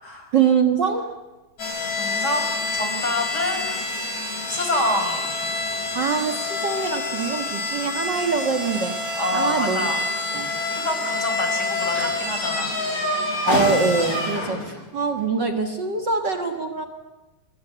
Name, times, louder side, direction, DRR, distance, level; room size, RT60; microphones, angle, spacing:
voice 1, 0.3-1.2 5.9-9.8 10.3-10.5 13.4-16.8, right 5 dB, 55° right, 6 dB, 1.2 m, -24 dB
sound 1, 1.6-14.8, left 2 dB, 45° left, 7.9 m, -27 dB
voice 2, 1.9-3.7 4.5-5.5 9.2-10.0 10.7-12.7, left 1 dB, 25° left, 4 dB, 5.5 m, -27 dB
27.0 x 22.5 x 8.2 m, 1.1 s
omnidirectional pair, 4.4 m